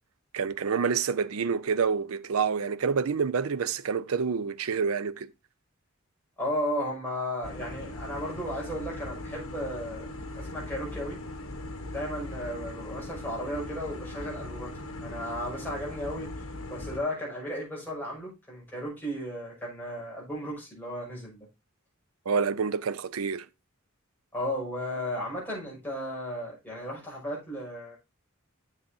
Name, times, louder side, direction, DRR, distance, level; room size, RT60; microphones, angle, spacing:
voice 1, 0.3-5.3 22.3-23.5, right 6 dB, 90° right, 0.5 m, -28 dB
voice 2, 6.4-11.2 11.9-14.7 15.0-16.3 16.7-21.5 24.3-28.0, equal, 10° left, 6.0 m, -34 dB
sound 1, 7.4-17.0, left 2 dB, 75° left, 1.6 m, -39 dB
9.9 x 7.4 x 2.7 m
head